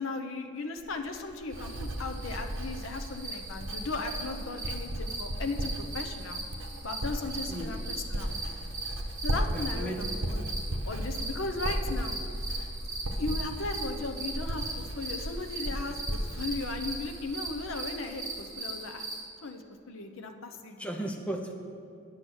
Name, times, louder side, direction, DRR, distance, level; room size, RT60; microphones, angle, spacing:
voice 1, 0.0-6.4 6.8-8.3 9.2-10.5 10.8-12.2 12.5-12.7 13.2-19.1 19.4-20.9, left 3 dB, 80° left, 5 dB, 0.8 m, -37 dB
Writing, 0.8-17.8 18.1-18.6, equal, 75° right, 1.0 m, -36 dB
sound 1, 1.5-19.2, right 2 dB, 15° right, 1.4 m, -40 dB
voice 2, 9.5-10.0 20.8-21.5, right 1 dB, 5° left, 2 dB, 0.7 m, -35 dB
8.7 x 8.7 x 6.3 m, 2.5 s
head